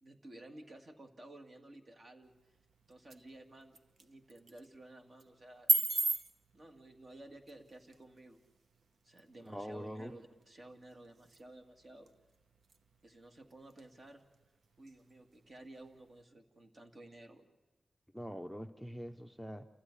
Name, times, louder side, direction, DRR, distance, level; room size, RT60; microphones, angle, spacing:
voice 1, 0.0-2.3 2.8-5.8 6.5-8.4 9.0-12.1 13.0-14.3 14.8-17.5, right 1 dB, 45° right, 4 dB, 2.2 m, -54 dB
sound 1, 2.2-16.2, right 4 dB, 75° right, 0.9 m, -41 dB
voice 2, 9.5-10.1 18.1-19.7, equal, ahead, 8 dB, 0.7 m, -43 dB
29.0 x 15.0 x 9.8 m, 1.2 s
wide cardioid pair, 100°, 0 cm